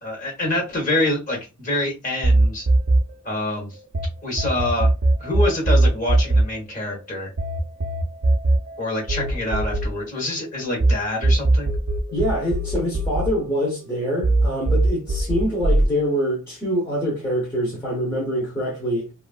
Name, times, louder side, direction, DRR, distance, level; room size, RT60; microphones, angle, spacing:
voice 1, 0.0-2.7 3.2-3.7 4.2-4.9 5.2-7.3 8.8-11.7, left 2 dB, 35° left, 1.0 m, -26 dB
sound 1, 2.2-4.1 4.4-10.9 11.2-13.9 14.2-15.9, right 2 dB, 50° right, 0.4 m, -20 dB
voice 2, 12.1-19.1, equal, 10° left, 0.7 m, -25 dB
3.0 x 2.4 x 2.3 m
head